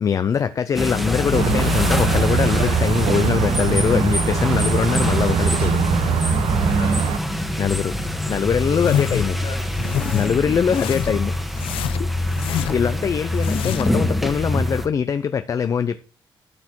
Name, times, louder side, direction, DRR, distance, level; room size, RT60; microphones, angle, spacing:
voice 1, 0.0-5.8 7.6-7.9 8.3-9.3 10.1-11.3 12.0-12.1 12.4-16.0, left 7 dB, 35° left, 0.6 m, -22 dB
sound 1, 0.8-14.9, left 1 dB, ahead, 1.4 m, -24 dB
sound 2, 1.3-7.2, right 7 dB, 80° right, 1.2 m, -22 dB
voice 2, 6.7-7.2 8.0-8.1 8.5-9.9 10.7-11.2 13.1-13.3, left 4 dB, 55° left, 4.0 m, -40 dB
sound 3, 8.7-9.3 9.7-10.3 10.7-11.2 11.6-12.9 13.3-14.0, left 11 dB, 80° left, 0.7 m, -26 dB
12.0 x 6.7 x 4.6 m
cardioid pair, 155°, 9 cm